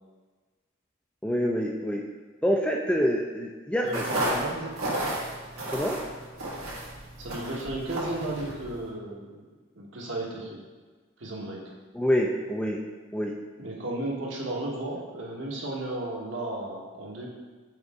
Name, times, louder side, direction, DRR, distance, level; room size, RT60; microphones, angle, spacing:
voice 1, 1.2-2.0 2.4-4.0 5.7-6.0 11.9-12.8 13.1-13.3, equal, 5° left, 0 dB, 0.3 m, -26 dB
voice 2, 3.8-5.0 7.2-9.4 9.7-10.6 11.2-11.6 13.6-17.3, right 1 dB, 65° right, -3 dB, 1.2 m, -34 dB
sound 1, 3.9-8.9, right 1 dB, 90° right, 1.8 m, -33 dB
6.5 x 4.6 x 3.5 m, 1.4 s
head